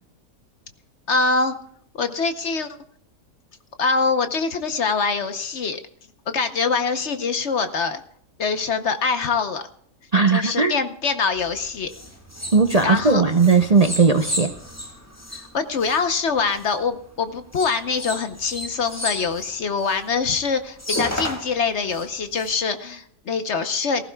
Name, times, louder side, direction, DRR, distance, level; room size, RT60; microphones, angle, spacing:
voice 1, 1.1-1.6 1.9-2.8 3.8-5.8 6.3-8.0 8.4-9.6 10.3-11.9 12.8-13.2 15.4-24.0, left 5 dB, 50° left, 9 dB, 1.0 m, -24 dB
voice 2, 10.1-10.8 12.5-14.6, right 4 dB, 45° right, 6 dB, 0.5 m, -17 dB
sound 1, 11.4-16.9 17.5-20.1 20.5-20.6 20.8-22.5, left 1 dB, 10° left, 1.7 m, -33 dB
18.0 x 15.5 x 2.3 m, 0.66 s
omnidirectional pair, 1.6 m